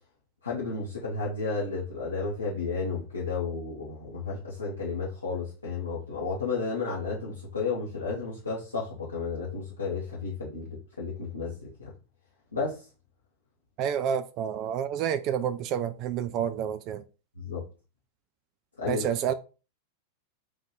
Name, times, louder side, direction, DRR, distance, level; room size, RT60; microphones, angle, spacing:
voice 1, 0.4-11.9 12.5-12.8 17.4-17.6 18.8-19.0, left 4 dB, 80° left, 1.0 m, -32 dB
voice 2, 13.8-17.0 18.9-19.3, right 9 dB, 40° right, 0.3 m, -29 dB
3.2 x 2.6 x 4.1 m
figure-of-eight pair, 90°, 0 cm